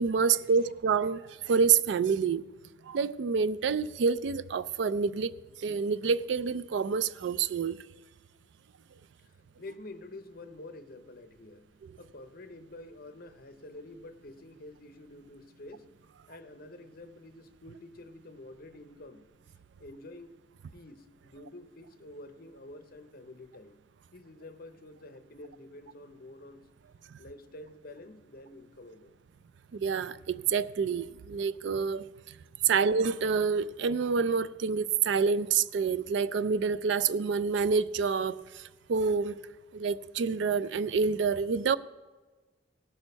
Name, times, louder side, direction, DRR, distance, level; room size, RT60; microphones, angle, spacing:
voice 1, 0.0-2.5 2.9-5.3 5.6-7.8 29.7-32.0 32.6-38.6 38.9-39.4 39.7-41.8, right 5 dB, 65° right, 0.4 m, -27 dB
voice 2, 9.2-15.9 16.3-19.3 19.8-20.3 20.7-23.8 24.1-26.6 27.2-29.2, left 2 dB, 50° left, 0.7 m, -48 dB
17.0 x 6.2 x 5.3 m
head